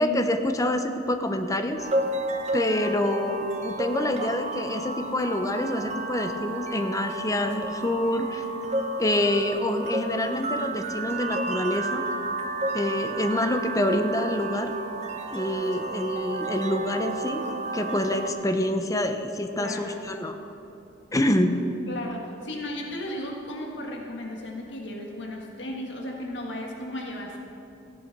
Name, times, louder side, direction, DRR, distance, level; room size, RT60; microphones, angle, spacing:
voice 1, 0.0-1.9 2.5-8.4 9.0-12.0 12.7-14.7 15.3-17.5 17.7-20.4 21.1-21.6, left 1 dB, 20° left, 6 dB, 0.7 m, -26 dB
sound 1, 1.8-18.3, right 2 dB, 40° right, 1.0 m, -32 dB
voice 2, 19.5-20.2 21.9-27.4, left 1 dB, 70° left, 0 dB, 1.7 m, -35 dB
15.0 x 8.8 x 6.0 m, 2.9 s
head